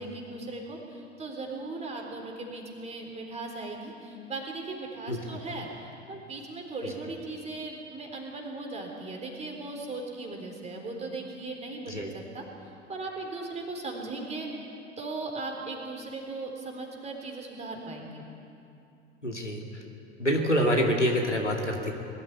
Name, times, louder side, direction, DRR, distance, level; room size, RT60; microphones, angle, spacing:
voice 1, 0.0-12.4 12.9-14.7 15.0-18.3, right 3 dB, 20° right, 1 dB, 3.9 m, -38 dB
voice 2, 19.2-19.6 20.2-21.9, equal, 90° left, 1 dB, 2.4 m, -26 dB
21.0 x 13.0 x 9.7 m, 2.6 s
figure-of-eight pair, 85°, 35 cm